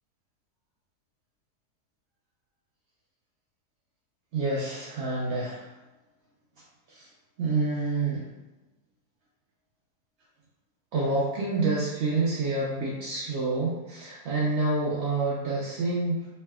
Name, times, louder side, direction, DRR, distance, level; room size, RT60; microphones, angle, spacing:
voice 1, 4.3-5.7 6.9-7.1 7.4-8.3 10.9-16.3, right 3 dB, 75° right, -6 dB, 0.6 m, -28 dB
3.1 x 2.6 x 2.2 m, 1.0 s
omnidirectional pair, 1.7 m